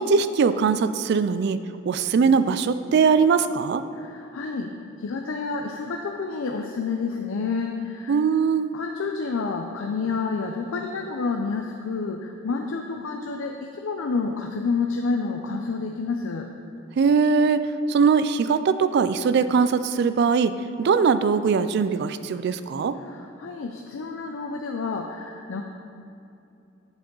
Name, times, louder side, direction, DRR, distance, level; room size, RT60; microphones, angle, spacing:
voice 1, 0.0-1.6 1.9-3.8 8.1-8.8 17.0-20.5 20.8-22.9, right 5 dB, 55° right, 13 dB, 0.3 m, -21 dB
voice 2, 3.9-8.2 8.7-16.5 23.0-25.6, left 4 dB, 80° left, 3 dB, 0.5 m, -29 dB
8.0 x 6.9 x 3.8 m, 2.7 s
head